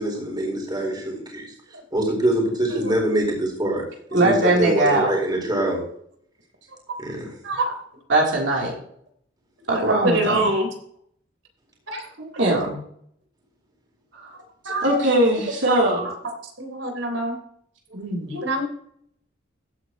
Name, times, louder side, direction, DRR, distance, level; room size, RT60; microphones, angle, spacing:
voice 1, 0.0-1.5 1.9-3.8 4.1-5.8 7.0-7.3, right 1 dB, 20° right, 0 dB, 4.3 m, -24 dB
voice 2, 4.1-5.1 8.1-8.7 9.7-10.5 12.2-12.7 14.2-14.3 14.8-16.1 17.9-18.3, right 1 dB, 65° right, -2 dB, 3.3 m, -21 dB
voice 3, 9.8-10.7 11.9-12.0 14.7-14.9 15.7-15.8 16.6-17.3 18.3-18.6, right 1 dB, 80° right, 4 dB, 3.7 m, -24 dB
15.5 x 9.0 x 3.0 m, 0.65 s
head